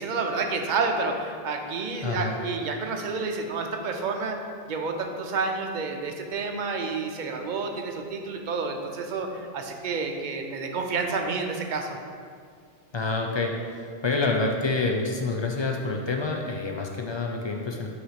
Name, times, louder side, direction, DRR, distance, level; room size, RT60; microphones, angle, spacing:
voice 1, 0.0-4.4 4.7-12.0, right 4 dB, 55° right, 4 dB, 0.7 m, -29 dB
voice 2, 2.0-2.4 12.9-17.9, left 3 dB, 45° left, 1 dB, 0.3 m, -27 dB
5.7 x 3.1 x 5.7 m, 2.2 s
omnidirectional pair, 1.0 m